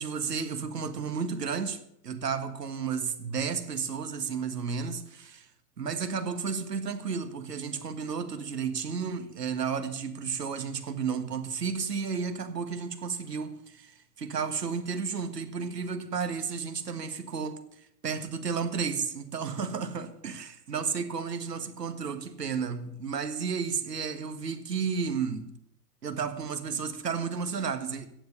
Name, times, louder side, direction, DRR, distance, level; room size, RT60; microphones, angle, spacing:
voice 1, 0.0-5.5 5.8-17.6 18.0-25.5 26.0-28.1, right 6 dB, 80° right, 1.7 m, -32 dB
15.0 x 7.8 x 6.9 m
figure-of-eight pair, 100°, 47 cm